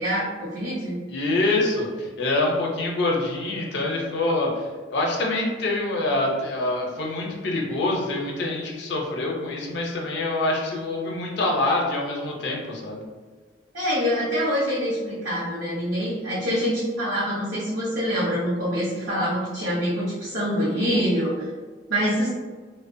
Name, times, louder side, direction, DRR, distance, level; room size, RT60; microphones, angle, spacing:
voice 1, 0.0-1.0 13.7-21.5 21.9-22.3, equal, 75° right, -9 dB, 0.7 m, -25 dB
voice 2, 1.1-13.0, left 2 dB, 65° left, -1 dB, 0.5 m, -25 dB
2.6 x 2.0 x 2.5 m, 1.4 s
head